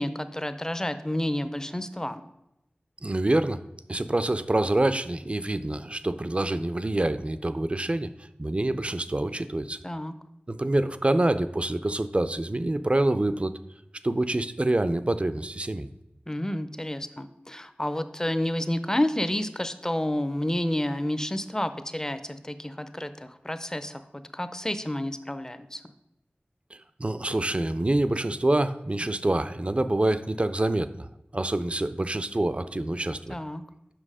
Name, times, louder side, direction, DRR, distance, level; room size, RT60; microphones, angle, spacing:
voice 1, 0.0-2.2 9.8-10.1 16.3-24.0 24.3-25.8 33.3-33.6, left 1 dB, 15° left, 11 dB, 0.6 m, -30 dB
voice 2, 3.0-3.6 3.9-8.1 8.4-9.8 10.5-13.5 14.0-15.9 27.0-33.4, right 1 dB, 35° right, 12 dB, 0.5 m, -26 dB
7.6 x 5.9 x 4.8 m, 0.90 s
wide cardioid pair, 50°, 4 cm